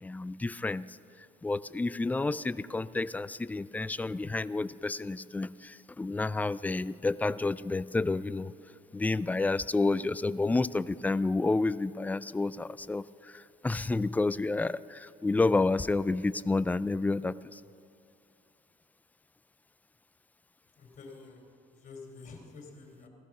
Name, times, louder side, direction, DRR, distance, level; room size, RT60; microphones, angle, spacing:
voice 1, 0.0-1.0 1.4-8.5 8.9-17.6, left 3 dB, 10° left, 17 dB, 0.3 m, -30 dB
voice 2, 20.8-23.1, left 4 dB, 45° left, 2 dB, 3.2 m, -49 dB
16.5 x 13.0 x 6.0 m, 2.5 s
cardioid pair, 110°, 17 cm